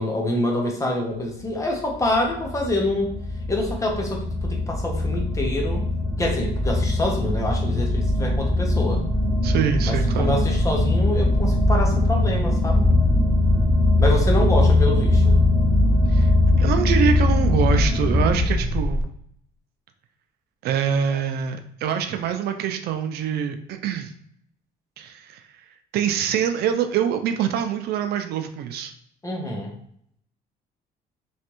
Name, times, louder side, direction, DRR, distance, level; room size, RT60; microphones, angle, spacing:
voice 1, 0.0-3.2 3.5-5.8 6.2-9.0 9.8-12.9 14.0-15.3 29.2-29.7, left 1 dB, 20° left, 0 dB, 0.9 m, -26 dB
sound 1, 1.5-19.0, left 1 dB, ahead, 0.5 m, -21 dB
voice 2, 9.4-10.3 16.1-16.3 16.6-19.0 20.6-24.1 25.0-25.4 25.9-28.9, right 8 dB, 70° right, 7 dB, 0.5 m, -25 dB
3.2 x 3.2 x 3.0 m, 0.67 s
cardioid pair, 110°, 17 cm